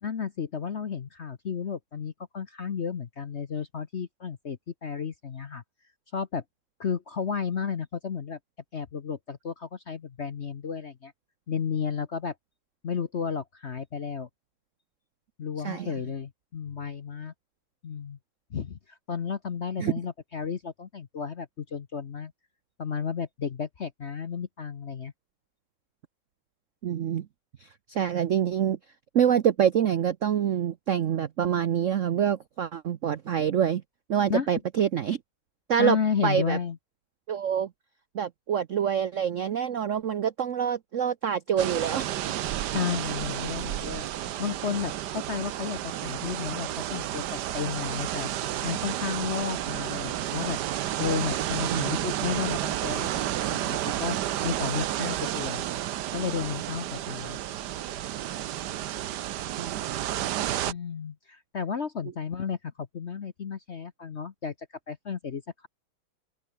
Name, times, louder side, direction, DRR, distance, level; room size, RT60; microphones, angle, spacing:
voice 1, 0.0-5.6 6.1-6.4 6.8-8.4 8.7-11.1 11.5-12.3 12.8-14.3 15.4-17.3 17.8-18.2 18.5-22.3 22.8-25.1 34.3-34.5 35.8-36.8 42.7-44.1 44.4-48.3 48.6-50.6 51.0-54.2 54.4-55.6 56.1-57.4 60.7-64.5 64.9-65.7, left 6 dB, 50° left, 0.8 m, -33 dB
voice 2, 15.6-16.0 19.8-19.9 26.8-27.3 27.6-28.8 29.1-33.8 34.1-35.2 35.7-36.0 36.2-36.6 37.3-37.7 38.1-42.1 51.7-52.0 59.6-59.8, right 9 dB, 80° right, 0.6 m, -26 dB
sound 1, 41.6-60.7, right 12 dB, 65° right, 1.2 m, -31 dB
open air
omnidirectional pair, 2.3 m